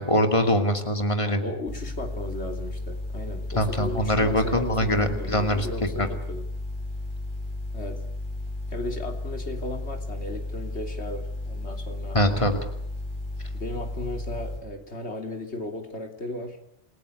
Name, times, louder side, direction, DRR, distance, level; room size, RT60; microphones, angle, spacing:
voice 1, 0.0-1.4 3.5-6.1 12.1-12.6, equal, 25° left, 6 dB, 2.5 m, -23 dB
voice 2, 1.3-6.5 7.7-8.0 8.7-12.2 13.5-16.6, left 2 dB, 70° left, 4 dB, 3.5 m, -36 dB
sound 1, 1.7-14.6, left 1 dB, 45° left, 8.2 m, -34 dB
28.5 x 17.0 x 8.2 m, 0.72 s
omnidirectional pair, 1.2 m